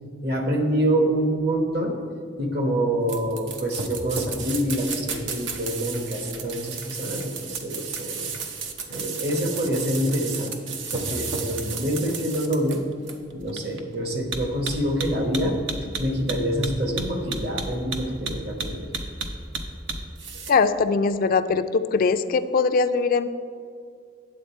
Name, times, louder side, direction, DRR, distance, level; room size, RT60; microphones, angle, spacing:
voice 1, 0.2-2.0 2.4-8.3 8.9-10.5 10.9-12.8 13.3-15.6 16.0-18.9, right 1 dB, 60° right, 3 dB, 1.3 m, -26 dB
sound 1, 3.1-20.5, right 4 dB, 80° right, 0.8 m, -32 dB
voice 2, 20.5-23.3, left 4 dB, 50° left, 10 dB, 0.4 m, -21 dB
9.3 x 7.7 x 4.4 m, 2.3 s
head